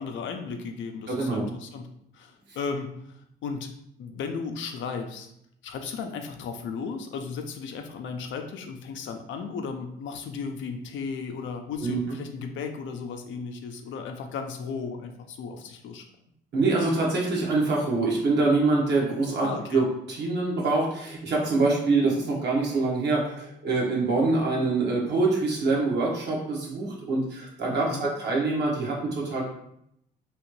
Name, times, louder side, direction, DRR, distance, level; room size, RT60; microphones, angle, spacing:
voice 1, 0.0-1.9 2.1-3.7 4.0-5.3 5.6-16.0 19.4-19.8 27.7-28.1, left 5 dB, 70° left, 5 dB, 0.5 m, -35 dB
voice 2, 1.1-1.5 11.8-12.0 16.5-29.4, right 3 dB, 60° right, -2 dB, 1.2 m, -25 dB
3.0 x 2.4 x 3.1 m, 0.74 s
cardioid pair, 90°, 20 cm